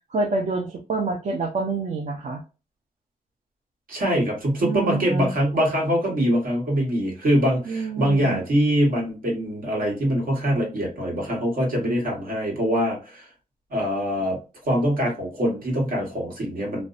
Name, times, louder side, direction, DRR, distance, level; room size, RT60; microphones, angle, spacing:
voice 1, 0.1-2.4 4.6-5.3 7.7-8.4, right 3 dB, 50° right, 1 dB, 0.5 m, -27 dB
voice 2, 3.9-13.3 13.7-14.4 14.6-16.8, equal, 70° right, 0 dB, 1.3 m, -23 dB
2.6 x 2.1 x 2.4 m, 0.31 s
cardioid pair, 80°, 15 cm